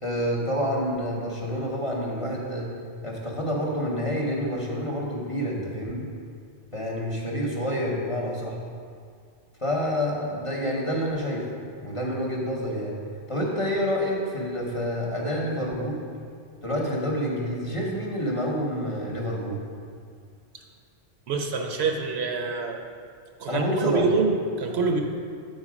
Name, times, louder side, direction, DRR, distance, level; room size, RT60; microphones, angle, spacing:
voice 1, 0.0-2.7 3.0-6.1 6.7-8.6 9.6-11.5 11.8-12.9 13.3-16.0 16.6-19.6 23.5-24.1, equal, 30° left, -3 dB, 0.8 m, -28 dB
voice 2, 21.3-22.8 23.4-25.0, right 4 dB, 70° right, 3 dB, 0.8 m, -25 dB
7.8 x 4.0 x 4.9 m, 2.2 s
omnidirectional pair, 1.2 m